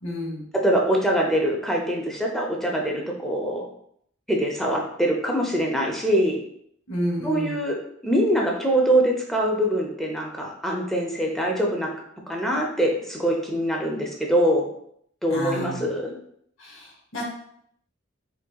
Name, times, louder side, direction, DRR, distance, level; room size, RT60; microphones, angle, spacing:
voice 1, 0.0-0.5 6.9-7.6 15.3-16.0 16.6-17.2, equal, 80° left, -2 dB, 1.0 m, -30 dB
voice 2, 0.6-3.7 4.3-6.4 7.2-11.9 12.3-14.7 15.2-16.1, right 1 dB, ahead, -1 dB, 0.6 m, -23 dB
3.8 x 3.1 x 2.3 m, 0.69 s
head